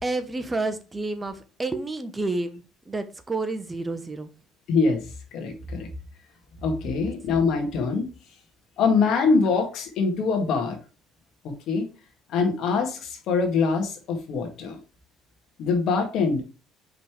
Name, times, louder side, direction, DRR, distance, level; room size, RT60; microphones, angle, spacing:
voice 1, 0.0-2.6 2.9-4.3, right 2 dB, 20° right, 8 dB, 0.9 m, -29 dB
voice 2, 4.7-5.0 5.3-5.9 6.6-8.1 8.8-10.8 11.4-11.8 12.3-14.8 15.6-16.4, left 4 dB, 65° left, 4 dB, 1.9 m, -24 dB
5.3 x 4.1 x 4.7 m, 0.33 s
supercardioid pair, 80°, 0 cm